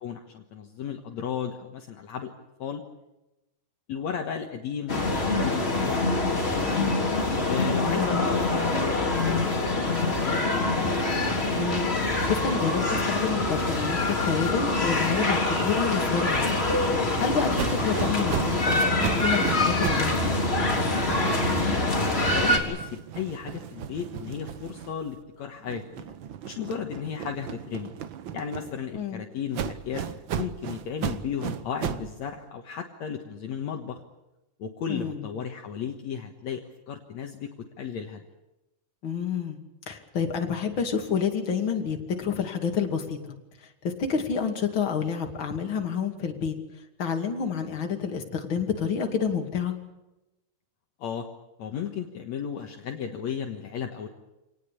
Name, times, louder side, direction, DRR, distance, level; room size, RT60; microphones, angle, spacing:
voice 1, 0.0-2.3 2.6-2.8 3.9-6.9 7.5-10.8 21.5-22.0 22.3-26.1 26.5-27.9 28.3-30.0 30.3-34.0 34.6-38.2 51.0-51.3 51.6-54.1, left 7 dB, 65° left, 3 dB, 2.6 m, -34 dB
sound 1, 4.9-22.6, left 2 dB, 20° left, 3.6 m, -25 dB
voice 2, 7.8-8.2 11.6-14.0 14.2-16.5 17.2-20.3 28.9-29.2 34.9-35.3 39.0-39.6 39.9-43.4 43.8-46.5 47.0-49.7, left 6 dB, 40° left, 3 dB, 3.0 m, -29 dB
sound 2, 17.5-20.1 20.4-25.2 25.6-29.0 29.5-32.1, right 9 dB, 80° right, 1.0 m, -36 dB
26.5 x 19.0 x 8.4 m, 0.98 s
omnidirectional pair, 3.7 m